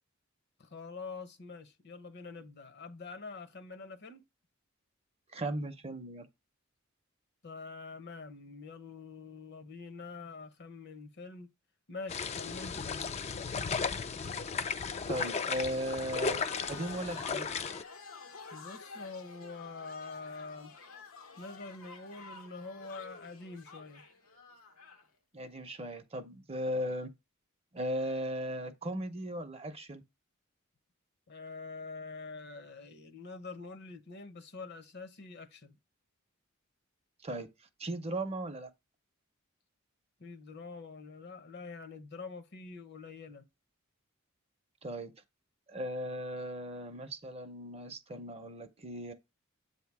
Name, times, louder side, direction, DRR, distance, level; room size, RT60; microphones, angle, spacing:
voice 1, 0.6-4.2 7.4-11.5 11.9-13.1 18.5-20.7 21.4-24.0 31.3-35.8 40.2-43.4, left 4 dB, 55° left, 0.8 m, -45 dB
voice 2, 5.3-6.3 15.1-17.5 25.3-27.1 27.7-30.0 37.2-37.5 37.8-38.7 44.8-45.1 45.7-49.1, equal, 30° right, 0.7 m, -37 dB
sound 1, 12.1-17.8, left 5 dB, 30° left, 0.4 m, -35 dB
sound 2, 16.3-25.1, left 4 dB, 85° left, 1.2 m, -50 dB
7.8 x 2.8 x 4.6 m
head